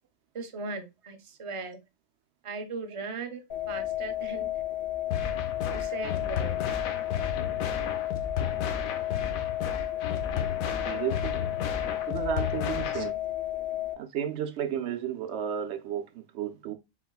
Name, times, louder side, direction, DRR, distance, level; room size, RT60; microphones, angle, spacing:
voice 1, 0.3-1.8 2.4-3.4 3.7-4.5 5.7-6.6 12.9-13.0, right 4 dB, 40° right, 0.4 m, -38 dB
sound 1, 3.5-13.9, left 13 dB, 55° left, 0.7 m, -33 dB
sound 2, 5.1-13.1, left 7 dB, 85° left, 1.1 m, -33 dB
voice 2, 10.8-11.5 12.1-13.2 14.0-16.7, right 9 dB, 65° right, 0.8 m, -33 dB
4.5 x 4.0 x 2.2 m
omnidirectional pair, 1.4 m